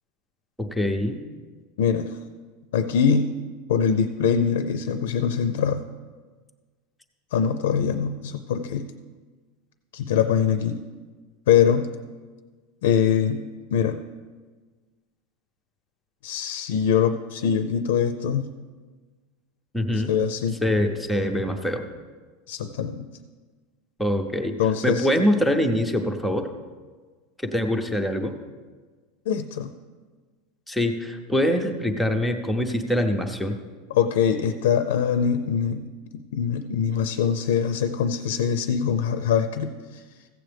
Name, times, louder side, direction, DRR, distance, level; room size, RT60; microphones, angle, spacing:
voice 1, 0.6-1.2 19.7-20.1 20.6-21.9 24.0-24.5 24.8-26.5 27.4-28.4 30.7-33.6, left 1 dB, ahead, 3 dB, 0.6 m, -24 dB
voice 2, 1.8-2.2 2.7-3.3 3.7-5.8 7.3-8.9 9.9-10.8 11.5-11.9 12.8-13.4 13.7-14.0 16.2-18.5 20.1-20.6 22.5-23.1 24.6-25.1 29.3-29.7 33.9-35.8 36.3-40.0, left 7 dB, 80° left, 9 dB, 0.5 m, -23 dB
15.5 x 7.8 x 3.4 m, 1.4 s
supercardioid pair, 170°, 0 cm